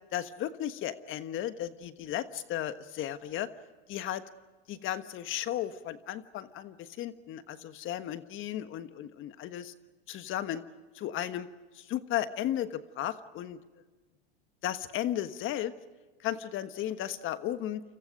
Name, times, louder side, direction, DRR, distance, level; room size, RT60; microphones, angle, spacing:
voice 1, 0.1-3.5 3.9-4.2 4.7-9.7 10.1-10.6 10.9-11.5 11.7-13.6 14.6-15.7 16.2-17.8, left 12 dB, 40° left, 11 dB, 1.3 m, -35 dB
29.0 x 27.0 x 5.2 m, 1.3 s
hypercardioid pair, 105°, 30 cm